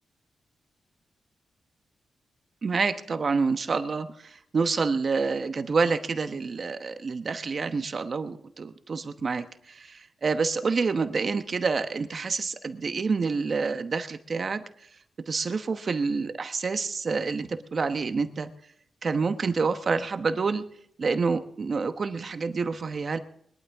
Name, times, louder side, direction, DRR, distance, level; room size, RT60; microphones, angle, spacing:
voice 1, 2.6-14.6 15.3-18.5 19.0-20.6 21.0-23.2, right 4 dB, 45° right, 9 dB, 1.0 m, -28 dB
21.5 x 12.5 x 3.5 m, 0.68 s
wide cardioid pair, 115°, 0 cm